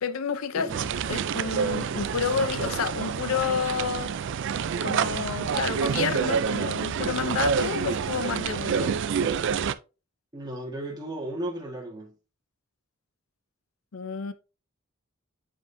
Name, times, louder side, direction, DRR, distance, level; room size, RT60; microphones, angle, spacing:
voice 1, 0.0-0.7 1.1-4.1 4.8-8.9 13.9-14.3, left 6 dB, 80° left, 0.6 m, -29 dB
voice 2, 0.5-0.9 10.3-12.1, right 1 dB, 20° right, 1.6 m, -35 dB
sound 1, 0.7-9.7, right 7 dB, 60° right, 0.4 m, -28 dB
7.7 x 5.2 x 2.6 m
head